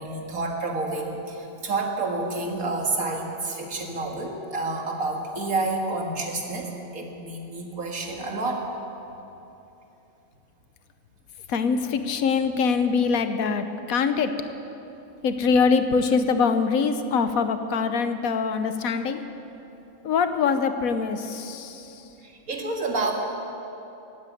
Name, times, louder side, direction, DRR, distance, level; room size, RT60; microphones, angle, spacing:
voice 1, 0.0-8.7 22.2-23.1, right 3 dB, 80° right, 1 dB, 2.3 m, -29 dB
voice 2, 11.5-14.3 15.2-19.2 20.0-21.9, left 5 dB, 80° left, 9 dB, 1.3 m, -23 dB
16.0 x 9.5 x 9.2 m, 3.0 s
omnidirectional pair, 1.5 m